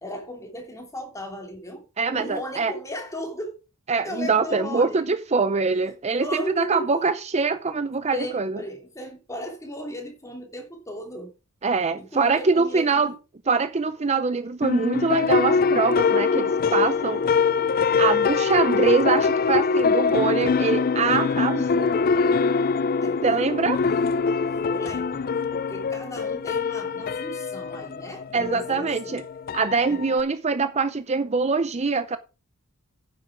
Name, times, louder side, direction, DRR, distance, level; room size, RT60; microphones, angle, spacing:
voice 1, 0.0-1.8 2.1-3.6 4.0-5.0 6.2-6.8 8.1-11.3 12.0-13.1 23.0-24.0 24.7-29.2 29.9-30.1, equal, 15° left, 2.9 m, -36 dB
voice 2, 2.0-2.7 3.9-8.6 11.6-13.1 13.5-17.2 18.0-21.9 23.2-23.8 28.3-29.2 29.5-32.2, right 4 dB, 30° right, 0.5 m, -23 dB
sound 1, 14.6-30.2, left 5 dB, 40° left, 0.4 m, -23 dB
9.9 x 7.7 x 4.9 m
head